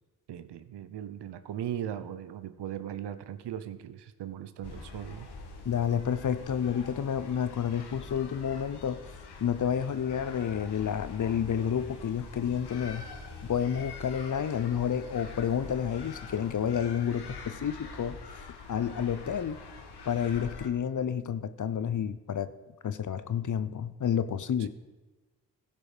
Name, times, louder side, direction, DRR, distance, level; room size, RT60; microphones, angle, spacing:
voice 1, 0.3-5.3 24.6-24.7, right 10 dB, 65° right, 12 dB, 0.8 m, -38 dB
sound 1, 4.6-20.7, left 4 dB, 65° left, 1.6 m, -45 dB
voice 2, 5.6-9.0 9.4-13.0 13.4-18.2 18.7-19.6 20.1-22.5 22.8-24.7, left 8 dB, 45° left, 13 dB, 0.8 m, -30 dB
16.0 x 5.4 x 5.1 m, 1.2 s
supercardioid pair, 40°, 43 cm